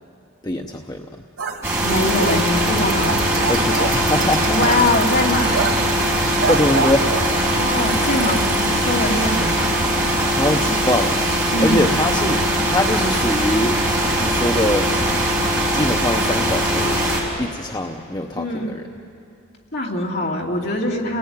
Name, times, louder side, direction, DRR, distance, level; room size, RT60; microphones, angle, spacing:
voice 1, 0.4-1.2 3.5-4.6 6.1-7.1 10.0-13.8 14.2-14.9 15.7-17.0 17.4-18.8, left 1 dB, 20° left, 3 dB, 0.8 m, -23 dB
sound 1, 1.4-7.8 8.2-8.5 8.7-8.8 9.1-9.4, right 4 dB, 90° right, 2.5 m, -28 dB
sound 2, 1.6-17.2, right 1 dB, 15° right, 5.1 m, -20 dB
voice 2, 1.8-3.1 4.5-5.6 7.5-9.7 11.5-11.8 18.4-18.8 19.7-21.2, left 1 dB, 50° left, -1 dB, 3.0 m, -22 dB
sound 3, 1.8-8.7, right 6 dB, 40° right, 3.5 m, -35 dB
29.0 x 19.0 x 9.7 m, 2.5 s
head